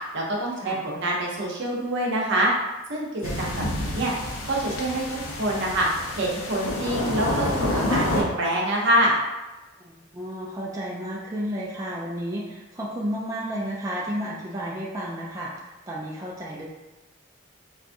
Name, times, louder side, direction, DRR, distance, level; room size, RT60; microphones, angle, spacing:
voice 1, 0.1-2.5 2.9-4.1 4.4-5.0 5.4-5.9 6.1-9.2, right 1 dB, 65° right, -3 dB, 0.8 m, -25 dB
sound 1, 3.2-8.2, left 1 dB, 90° left, 0.6 m, -28 dB
voice 2, 9.9-16.7, equal, 15° right, -5 dB, 0.4 m, -32 dB
4.0 x 2.4 x 2.6 m, 1.1 s
head